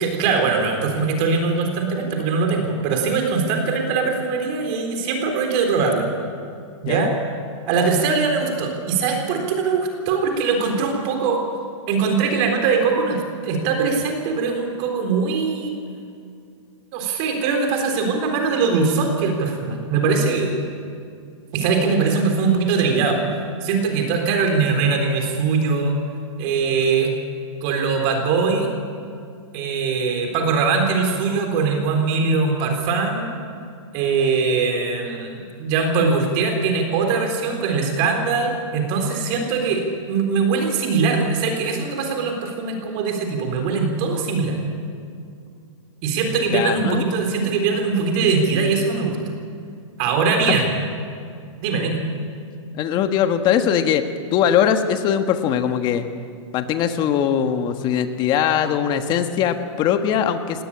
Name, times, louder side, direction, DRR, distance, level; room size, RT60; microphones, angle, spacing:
voice 1, 0.0-6.1 6.8-7.1 7.7-11.4 11.9-15.7 16.9-20.6 21.5-23.2 23.6-26.0 26.4-27.1 27.6-28.7 29.5-33.3 33.9-44.6 46.0-49.2 50.0-50.7 51.6-52.0, right 4 dB, 40° right, 4 dB, 3.8 m, -21 dB
voice 2, 6.8-7.1 46.5-47.0 50.5-50.6 52.8-56.0 56.5-60.6, left 9 dB, 25° left, 8 dB, 1.5 m, -21 dB
19.0 x 18.0 x 9.9 m, 2.4 s
hypercardioid pair, 145°, 17 cm